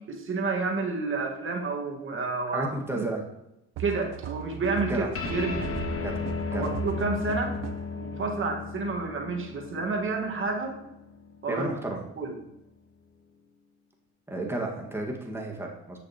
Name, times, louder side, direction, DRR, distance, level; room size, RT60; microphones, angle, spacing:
voice 1, 0.0-2.7 2.9-3.1 3.8-5.7 6.5-7.6 8.0-10.8 11.4-11.6 12.2-12.3, right 3 dB, 45° right, 1 dB, 1.6 m, -30 dB
voice 2, 2.5-3.2 4.9-5.1 6.0-6.1 6.5-6.7 11.5-12.0 14.3-16.0, right 2 dB, 10° right, 0 dB, 1.6 m, -32 dB
sound 1, 3.7-8.0, right 10 dB, 60° right, 0.5 m, -38 dB
sound 2, 5.1-11.9, left 5 dB, 50° left, 1.0 m, -35 dB
8.1 x 6.4 x 2.9 m, 0.87 s
cardioid pair, 90°, 30 cm